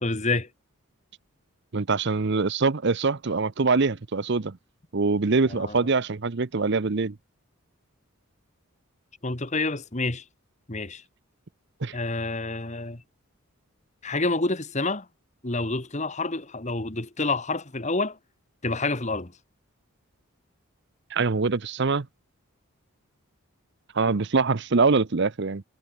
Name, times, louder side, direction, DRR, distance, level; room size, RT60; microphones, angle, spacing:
voice 1, 0.0-0.5 5.5-5.9 9.2-10.2 10.7-11.0 11.9-13.0 14.0-15.1 15.4-18.2 18.6-19.3, left 3 dB, 35° left, 1.7 m, -28 dB
voice 2, 1.7-4.6 4.9-7.1 11.8-11.9 21.1-22.1 23.9-25.6, right 4 dB, 55° right, 0.7 m, -24 dB
head